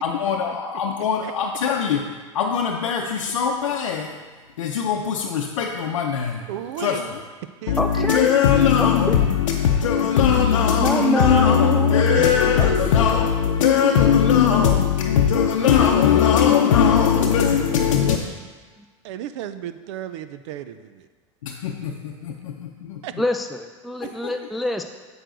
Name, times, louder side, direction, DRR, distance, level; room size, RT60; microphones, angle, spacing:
voice 1, 0.0-2.0 2.3-4.2 4.6-6.4 6.8-7.1 7.7-18.2 21.4-23.0 24.0-24.3, left 8 dB, 80° left, 0 dB, 0.7 m, -20 dB
voice 2, 6.5-7.1 7.6-8.1 19.0-21.1 23.0-23.1, right 11 dB, 65° right, 11 dB, 0.5 m, -34 dB
voice 3, 7.8-8.3 8.8-9.2 10.7-12.7 23.2-24.8, equal, ahead, 4 dB, 0.4 m, -26 dB
7.9 x 6.4 x 3.9 m, 1.4 s
hypercardioid pair, 100°, 16 cm